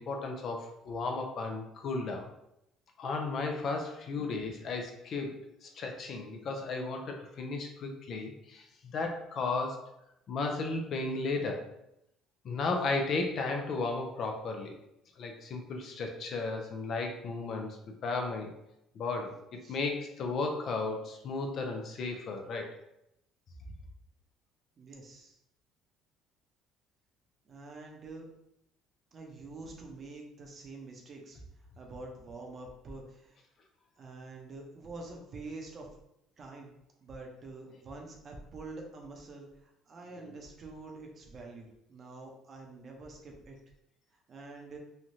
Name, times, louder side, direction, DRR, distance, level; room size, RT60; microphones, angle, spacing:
voice 1, 0.0-2.3 3.0-9.8 10.3-11.6 12.4-14.7 15.2-17.8 18.0-18.5 18.9-22.7 40.2-40.3, left 3 dB, 55° left, 3 dB, 0.5 m, -34 dB
voice 2, 24.8-25.4 27.4-28.3 29.1-31.4 31.8-33.4 34.0-35.9 36.4-36.7 37.0-43.6 44.3-44.8, right 3 dB, 40° right, 1 dB, 0.7 m, -46 dB
3.1 x 2.4 x 2.7 m, 0.82 s
cardioid pair, 100°, 0 cm